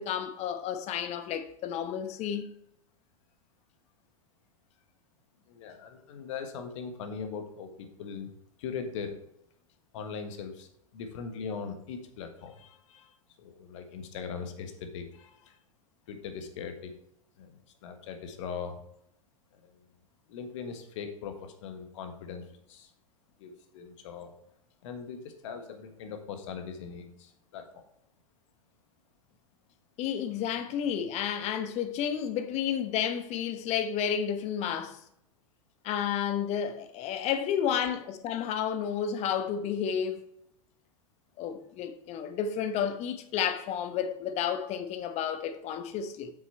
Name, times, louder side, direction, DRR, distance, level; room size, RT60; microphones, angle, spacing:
voice 1, 0.0-2.5 30.0-35.0 35.8-40.2 41.4-46.3, left 8 dB, 35° left, 1.0 m, -31 dB
voice 2, 5.5-8.3 8.6-9.2 9.9-13.1 13.4-15.6 16.1-16.9 17.4-18.8 19.5-19.6 20.3-22.9 23.4-24.3 24.8-27.8, left 6 dB, 55° left, 1.5 m, -40 dB
7.9 x 6.3 x 4.3 m
figure-of-eight pair, 90°, 18 cm